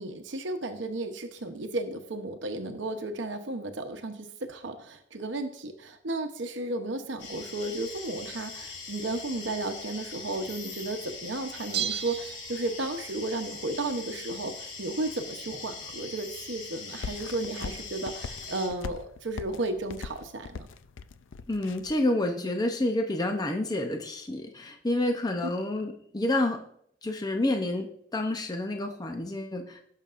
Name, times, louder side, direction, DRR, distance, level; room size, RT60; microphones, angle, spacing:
voice 1, 0.0-20.7, right 2 dB, 70° right, 6 dB, 0.9 m, -34 dB
sound 1, 7.2-18.7, left 4 dB, 70° left, 3.3 m, -42 dB
Bell, 11.7-13.1 13.4-13.5, right 9 dB, 55° right, 0.4 m, -34 dB
sound 2, 17.0-22.0, left 5 dB, 90° left, 0.5 m, -40 dB
voice 2, 21.5-26.6 27.0-29.8, left 1 dB, 20° left, 4 dB, 0.6 m, -29 dB
16.5 x 6.6 x 2.5 m, 0.68 s
head